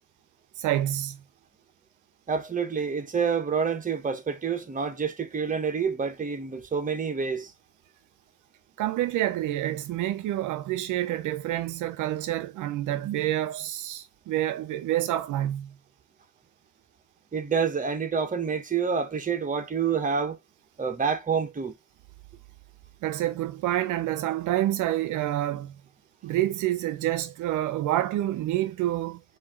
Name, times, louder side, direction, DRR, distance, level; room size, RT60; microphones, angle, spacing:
voice 1, 0.6-1.2 8.8-15.7 23.0-25.8 26.2-29.2, right 13 dB, 80° right, 0.5 m, -28 dB
voice 2, 2.3-7.5 17.3-20.4 20.8-21.7, right 6 dB, 25° right, 1.0 m, -28 dB
4.6 x 2.7 x 3.5 m
cardioid pair, 90°, 30 cm